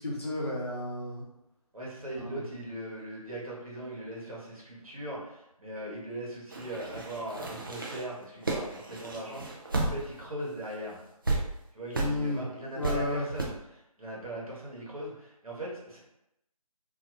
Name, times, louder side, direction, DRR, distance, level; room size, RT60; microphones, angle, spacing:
voice 1, 0.0-1.2 2.2-2.4 11.9-12.4 12.7-13.3, left 2 dB, 40° left, -6 dB, 0.9 m, -32 dB
voice 2, 1.7-11.0 11.7-16.0, right 1 dB, 65° right, -4 dB, 1.3 m, -39 dB
sound 1, 6.5-10.3 10.6-10.7 11.2-11.4 11.9-12.1 12.8-12.9 13.4-13.5, right 2 dB, 35° right, 0.5 m, -32 dB
2.8 x 2.7 x 2.6 m, 0.84 s
figure-of-eight pair, 160°, 20 cm